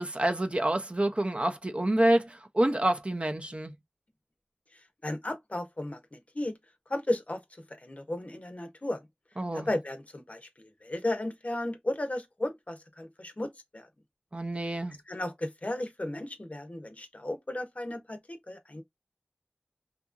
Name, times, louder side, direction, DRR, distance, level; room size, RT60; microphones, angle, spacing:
voice 1, 0.0-3.7 9.4-9.7 14.3-14.9, right 1 dB, 40° right, 0.5 m, -27 dB
voice 2, 4.7-6.6 6.9-7.4 7.8-9.1 9.5-13.9 15.1-18.8, left 1 dB, 50° left, 0.6 m, -35 dB
2.8 x 2.5 x 2.3 m
wide cardioid pair, 50°, 3 cm